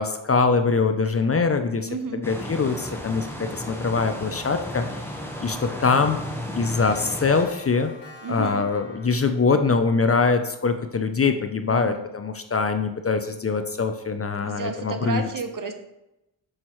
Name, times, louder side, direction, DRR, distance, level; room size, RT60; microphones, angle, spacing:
voice 1, 0.0-5.0 5.4-6.2 6.5-7.9 8.3-15.3, left 4 dB, 35° left, 8 dB, 0.5 m, -23 dB
voice 2, 1.9-2.2 8.2-8.6 11.7-12.0 14.4-15.7, right 4 dB, 45° right, 7 dB, 0.9 m, -31 dB
sound 1, 2.2-7.4, left 1 dB, 5° left, 1.1 m, -34 dB
Clock, 4.9-5.0 5.3-5.4 5.7-9.2, left 2 dB, 75° left, 1.4 m, -46 dB
6.3 x 5.3 x 3.1 m, 0.89 s
cardioid pair, 55°, 44 cm